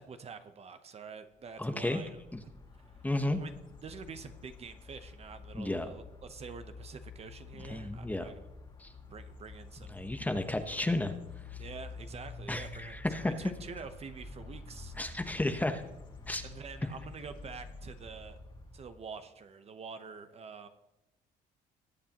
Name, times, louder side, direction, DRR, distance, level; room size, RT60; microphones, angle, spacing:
voice 1, 0.0-2.2 2.9-3.0 3.4-3.5 3.8-8.4 9.1-10.0 11.6-15.4 16.4-18.4 18.7-20.7, right 5 dB, 40° right, 9 dB, 0.9 m, -47 dB
sound 1, 1.6-19.2, left 3 dB, 25° left, 2.0 m, -49 dB
voice 2, 1.6-2.0 3.0-3.4 5.5-5.9 7.7-8.3 8.8-8.9 9.9-11.1 12.5-13.3 15.0-15.8 16.3-16.5, left 1 dB, 10° left, 8 dB, 1.0 m, -32 dB
20.5 x 8.1 x 3.0 m, 0.95 s
cardioid pair, 110°, 17 cm